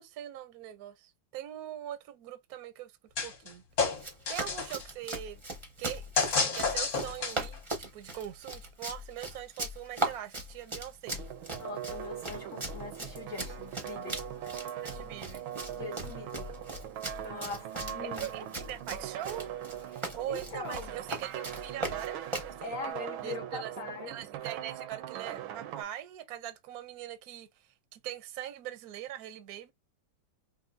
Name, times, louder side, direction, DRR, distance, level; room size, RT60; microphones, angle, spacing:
voice 1, 0.0-2.9 3.2-3.6 4.3-5.4 5.8-11.2 14.8-15.4 18.0-19.5 20.1-22.8 23.2-23.7 24.1-27.5 27.9-29.7, right 11 dB, 70° right, 0.9 m, -42 dB
sound 1, 3.2-3.5 3.8-4.8 6.2-7.6, left 5 dB, 45° left, 1.2 m, -30 dB
Run, 3.9-22.5, right 2 dB, 30° right, 0.5 m, -39 dB
sound 2, 11.1-25.8, right 11 dB, 85° right, 1.4 m, -41 dB
voice 2, 11.6-14.2 15.7-16.5 17.2-18.3 19.9-20.9 22.6-24.2 24.4-24.5, left 4 dB, 65° left, 0.8 m, -42 dB
5.2 x 2.6 x 2.6 m
omnidirectional pair, 2.2 m